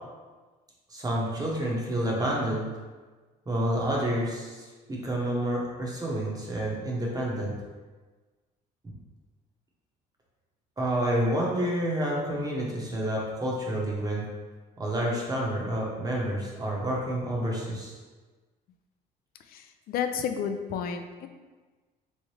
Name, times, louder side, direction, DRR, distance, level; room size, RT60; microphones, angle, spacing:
voice 1, 0.9-2.7 3.5-7.5 10.8-14.2 14.8-17.9, right 1 dB, 20° right, -3 dB, 0.9 m, -29 dB
voice 2, 19.5-21.3, left 7 dB, 60° left, 7 dB, 0.4 m, -31 dB
3.5 x 3.1 x 3.2 m, 1.3 s
cardioid pair, 110°, 17 cm